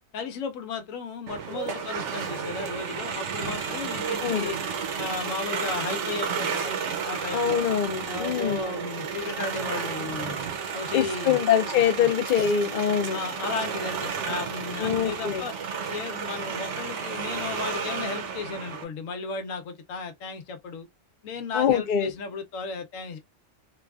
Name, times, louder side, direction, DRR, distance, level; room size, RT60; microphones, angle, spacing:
voice 1, 0.1-4.6 5.0-6.7 7.0-7.6 8.0-10.4 10.7-11.4 12.0-12.1 13.1-15.5 15.9-20.9 21.2-23.2, left 4 dB, 85° left, 1.1 m, -35 dB
sound 1, 1.3-18.8, right 6 dB, 70° right, 0.9 m, -32 dB
voice 2, 7.3-8.6 10.9-13.2 14.8-15.4 21.5-22.1, left 8 dB, 55° left, 0.6 m, -24 dB
3.2 x 2.3 x 2.3 m
omnidirectional pair, 1.4 m